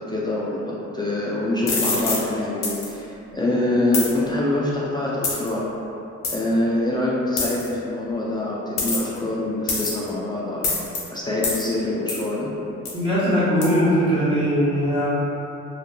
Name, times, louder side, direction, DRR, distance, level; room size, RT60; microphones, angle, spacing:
voice 1, 0.1-5.7 6.3-10.7 11.1-12.5, left 1 dB, 15° left, -6 dB, 0.3 m, -25 dB
sound 1, 1.7-2.2 2.6-2.9 3.9-4.1 5.2-5.5 6.2-6.4 7.4-7.7 8.8-9.2 9.7-10.1 10.6-11.0 11.4-11.6 12.1-12.3 12.9-13.0 13.6-13.7, left 3 dB, 60° left, 0.7 m, -25 dB
voice 2, 12.9-15.1, equal, 15° right, -12 dB, 1.4 m, -20 dB
2.7 x 2.2 x 2.2 m, 2.9 s
cardioid pair, 90°, 30 cm